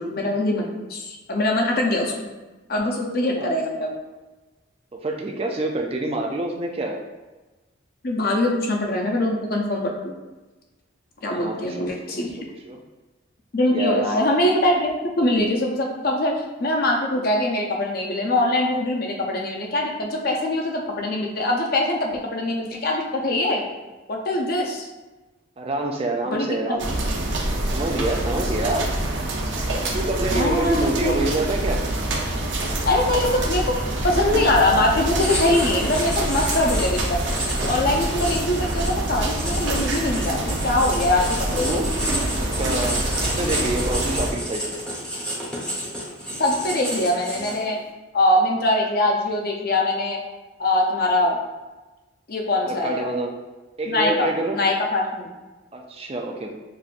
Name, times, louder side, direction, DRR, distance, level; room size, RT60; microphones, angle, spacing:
voice 1, 0.0-2.1 2.7-3.9 8.0-10.1 11.2-12.4 13.5-16.3 16.6-23.7 24.1-24.9 26.3-26.8 30.3-31.2 32.9-33.7 34.0-37.2 37.6-41.8 46.4-47.8 48.1-50.2 50.6-51.4 52.3-53.1 53.9-55.3, left 1 dB, 45° left, 0 dB, 0.6 m, -23 dB
voice 2, 3.2-3.5 4.9-7.0 11.3-11.8 12.1-12.2 12.7-12.8 13.7-14.1 25.6-26.9 27.7-28.9 29.9-31.8 41.5-42.0 42.4-44.8 52.6-53.4 53.8-54.6 55.7-56.5, right 2 dB, 30° right, 2 dB, 0.4 m, -27 dB
sound 1, 26.8-44.3, right 1 dB, 65° right, 0.7 m, -26 dB
Writing, 35.2-47.8, equal, 5° left, 0.8 m, -31 dB
6.7 x 2.5 x 2.5 m, 1.2 s
head